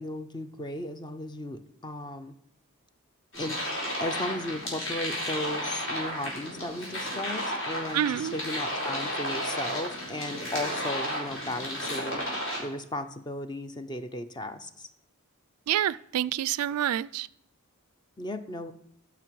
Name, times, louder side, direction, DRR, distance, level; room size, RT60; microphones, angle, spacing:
voice 1, 0.0-2.3 3.4-3.6 4.0-12.2 12.6-14.9 18.2-18.7, left 1 dB, 20° left, 0.5 m, -35 dB
sound 1, 3.3-12.6, equal, 55° left, 4.2 m, -33 dB
voice 2, 7.9-8.3 15.7-17.3, right 11 dB, 80° right, 0.3 m, -27 dB
15.0 x 5.9 x 4.6 m
head